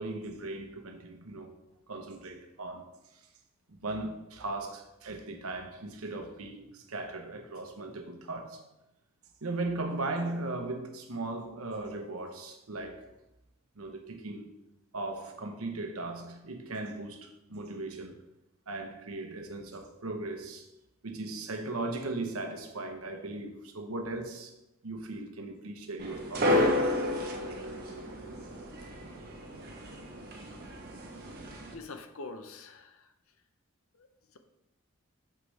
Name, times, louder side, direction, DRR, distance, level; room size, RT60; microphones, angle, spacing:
voice 1, 0.0-1.6 1.9-3.2 3.7-8.6 9.4-13.1 13.8-14.6 14.9-18.1 18.7-20.7 21.0-24.5 24.8-26.7, right 2 dB, 90° right, 1.0 m, -38 dB
sound 1, 26.0-31.7, left 1 dB, 45° right, 1.1 m, -32 dB
voice 2, 31.7-33.1 33.9-34.4, left 3 dB, 75° left, 0.7 m, -45 dB
6.7 x 6.2 x 3.3 m
head